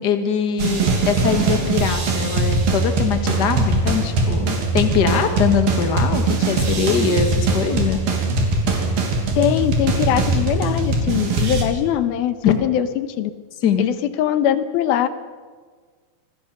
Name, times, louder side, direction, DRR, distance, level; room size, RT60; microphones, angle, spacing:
voice 1, 0.0-8.1 12.4-12.5 13.6-13.9, left 7 dB, 45° left, 6 dB, 1.4 m, -22 dB
sound 1, 0.6-11.6, right 3 dB, 70° right, 4.8 m, -21 dB
voice 2, 9.4-13.3 13.8-15.1, left 11 dB, 80° left, 11 dB, 2.9 m, -21 dB
26.5 x 19.5 x 6.9 m, 1.5 s
omnidirectional pair, 4.4 m